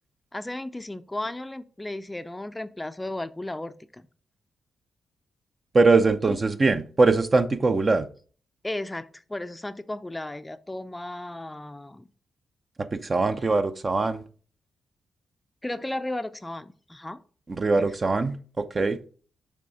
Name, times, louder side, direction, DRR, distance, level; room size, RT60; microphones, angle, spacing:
voice 1, 0.3-4.1 6.3-6.4 8.6-12.1 15.6-17.2 17.8-17.9, left 1 dB, 15° left, 0.5 m, -35 dB
voice 2, 5.7-8.1 12.8-14.2 17.5-19.0, right 3 dB, 40° right, 0.7 m, -22 dB
6.6 x 3.4 x 4.9 m
cardioid pair, 60°, 0 cm